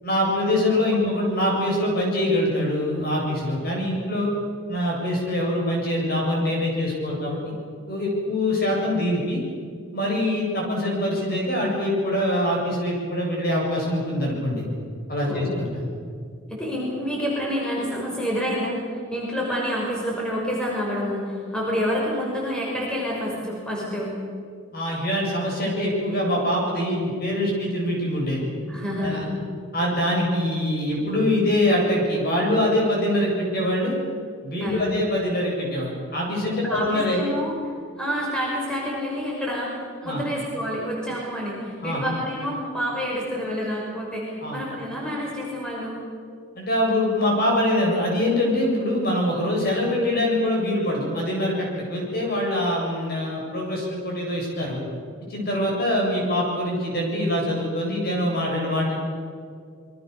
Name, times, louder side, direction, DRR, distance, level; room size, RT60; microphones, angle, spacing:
voice 1, 0.0-4.3 4.7-7.4 7.9-9.4 9.9-14.6 15.1-15.7 24.7-28.4 29.0-29.2 29.7-34.0 34.4-37.2 40.0-40.2 41.8-42.0 44.4-44.6 46.5-54.8 55.3-58.9, left 1 dB, 45° left, -1 dB, 7.8 m, -24 dB
voice 2, 16.5-18.7 19.1-24.2 28.7-29.2 34.6-34.8 36.6-37.6 38.0-46.0, equal, 5° left, -4 dB, 5.7 m, -28 dB
27.0 x 23.5 x 6.9 m, 2.2 s
head